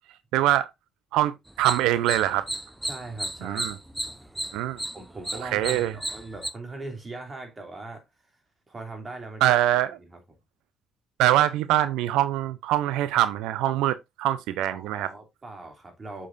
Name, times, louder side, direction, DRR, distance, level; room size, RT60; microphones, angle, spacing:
voice 1, 0.3-0.7 1.1-2.5 3.4-3.8 4.5-4.8 5.4-5.9 9.4-9.9 11.2-15.1, right 13 dB, 85° right, 0.6 m, -23 dB
sound 1, 1.5-6.5, right 1 dB, 5° right, 0.7 m, -34 dB
voice 2, 2.8-3.8 4.9-8.0 8.7-9.6 10.0-10.2 14.7-16.3, right 2 dB, 30° right, 2.9 m, -40 dB
7.5 x 6.7 x 2.6 m
cardioid pair, 80°, 0 cm